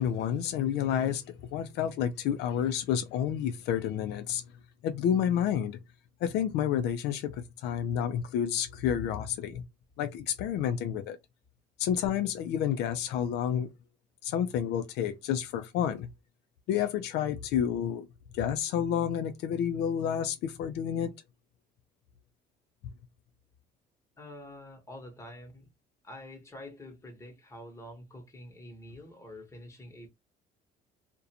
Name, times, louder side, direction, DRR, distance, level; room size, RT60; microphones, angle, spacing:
voice 1, 0.0-4.4 4.8-5.8 6.2-9.6 10.0-11.2 11.8-13.7 14.2-16.1 16.7-18.1 18.3-21.1, left 9 dB, 80° left, 0.4 m, -30 dB
voice 2, 24.2-25.7 26.0-30.1, left 1 dB, 15° left, 1.0 m, -47 dB
2.4 x 2.2 x 2.7 m
cardioid pair, 110°, 17 cm